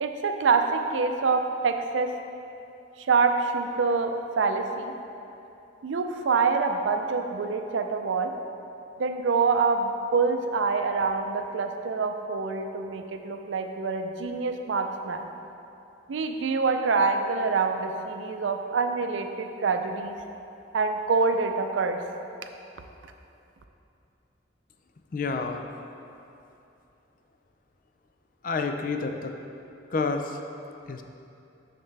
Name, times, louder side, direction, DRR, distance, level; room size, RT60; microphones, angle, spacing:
voice 1, 0.0-2.1 3.0-4.9 5.8-8.4 9.0-15.3 16.1-20.2 20.7-22.0, right 4 dB, 85° right, 6 dB, 0.5 m, -26 dB
voice 2, 25.1-25.7 28.4-29.3 29.9-30.4 30.9-31.0, left 4 dB, 45° left, 5 dB, 0.4 m, -29 dB
7.2 x 6.6 x 3.3 m, 2.8 s
head